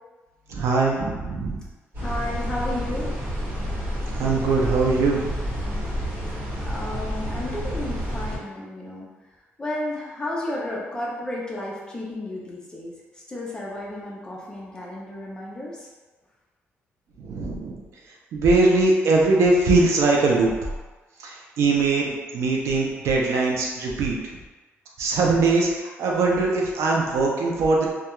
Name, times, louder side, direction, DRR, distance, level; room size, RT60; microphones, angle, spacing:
voice 1, 0.5-1.6 4.1-5.3 17.2-17.8 18.3-20.5 21.2-24.2 25.0-27.9, right 3 dB, 80° right, -1 dB, 0.5 m, -21 dB
sound 1, 1.9-8.4, equal, 55° right, 1.2 m, -29 dB
voice 2, 2.0-3.2 6.6-9.1 9.6-15.9, left 1 dB, 15° left, -4 dB, 0.5 m, -33 dB
2.3 x 2.3 x 2.9 m, 1.2 s
cardioid pair, 140°, 5 cm